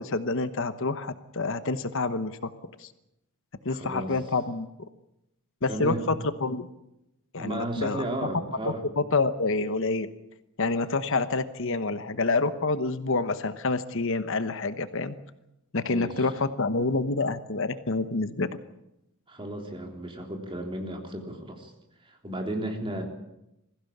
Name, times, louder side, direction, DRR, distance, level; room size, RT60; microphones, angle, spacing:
voice 1, 0.0-2.5 2.8-2.9 3.6-4.7 5.6-6.1 6.4-6.7 7.3-8.0 9.0-10.1 10.6-15.2 15.7-18.5, left 3 dB, 60° left, 11 dB, 1.0 m, -27 dB
voice 2, 3.7-4.1 5.7-6.1 7.4-8.8 15.8-16.3 19.3-21.7 22.1-23.0, right 1 dB, 25° right, 2 dB, 3.5 m, -34 dB
22.0 x 15.5 x 8.6 m, 0.88 s
head